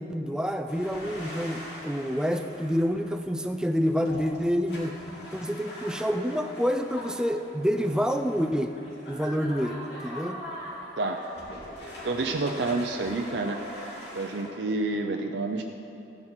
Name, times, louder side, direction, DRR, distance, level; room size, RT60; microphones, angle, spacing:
voice 1, 0.0-4.9 5.3-8.8 9.1-9.8 10.0-10.4, equal, 5° right, 6 dB, 0.4 m, -28 dB
sound 1, 0.7-14.5, equal, 70° left, 3.1 m, -42 dB
voice 2, 11.8-13.6 14.2-15.6, right 3 dB, 75° right, 3 dB, 0.6 m, -29 dB
15.5 x 9.8 x 4.4 m, 2.8 s
head